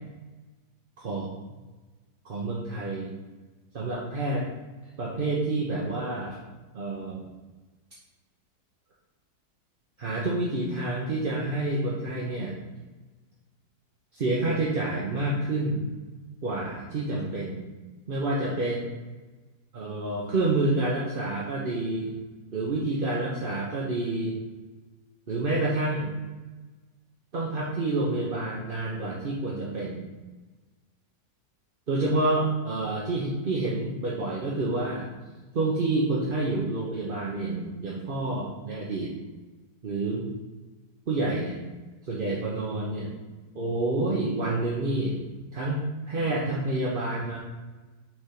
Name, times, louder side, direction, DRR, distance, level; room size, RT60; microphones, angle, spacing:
voice 1, 2.2-3.1 3.7-4.4 5.0-6.4 6.7-7.3 10.0-12.6 14.1-15.8 16.4-17.6 18.1-18.8 19.7-22.1 22.5-24.3 25.3-26.1 27.3-30.1 31.9-35.1 35.5-39.1 39.8-40.3 41.1-41.6 42.0-43.1 43.5-45.2 45.5-47.4, right 2 dB, 40° right, -4 dB, 0.9 m, -28 dB
6.0 x 3.5 x 5.9 m, 1.2 s
omnidirectional pair, 1.7 m